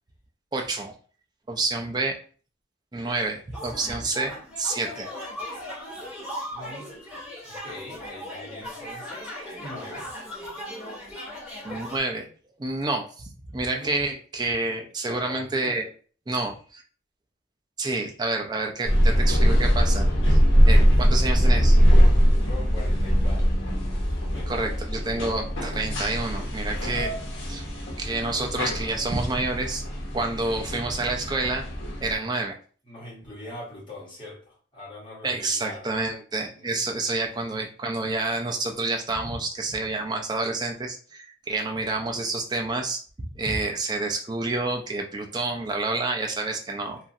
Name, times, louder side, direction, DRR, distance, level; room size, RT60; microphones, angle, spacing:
voice 1, 0.5-0.9 1.5-2.2 2.9-5.1 11.6-12.3 12.6-15.9 16.3-16.8 17.8-20.4 20.7-21.8 24.5-27.1 27.5-27.7 28.0-29.8 30.1-31.6 32.0-32.6 35.2-47.0, right 2 dB, 20° right, 2 dB, 0.4 m, -28 dB
sound 1, 3.5-12.0, equal, 5° right, 1.2 m, -38 dB
voice 2, 6.5-6.9 7.4-10.1 13.7-14.0 15.0-15.8 18.8-19.2 22.2-23.6 24.0-24.7 28.7-28.9 32.1-32.3 32.9-35.9 36.5-37.1, left 1 dB, 25° left, -6 dB, 1.2 m, -42 dB
sound 2, 18.9-32.1, equal, 70° left, 0.8 m, -21 dB
2.9 x 2.5 x 2.6 m, 0.42 s
head